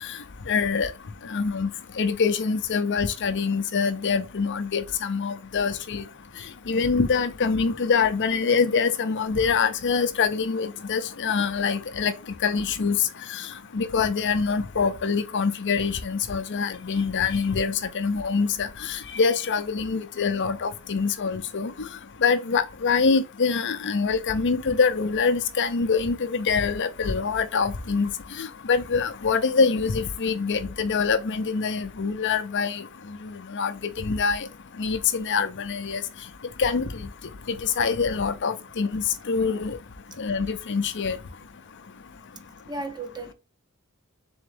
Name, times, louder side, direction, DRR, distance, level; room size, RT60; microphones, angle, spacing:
voice 1, 0.5-0.9 1.3-1.7 2.0-6.0 6.7-12.1 12.4-13.0 13.3-13.4 13.7-21.7 22.2-28.1 28.4-32.8 33.5-34.5 34.8-36.0 36.6-37.1 37.6-39.8 40.2-41.2, left 5 dB, 55° left, 0.6 m, -25 dB
voice 2, 42.7-43.3, right 2 dB, 20° right, 0.7 m, -35 dB
3.9 x 3.6 x 3.4 m
head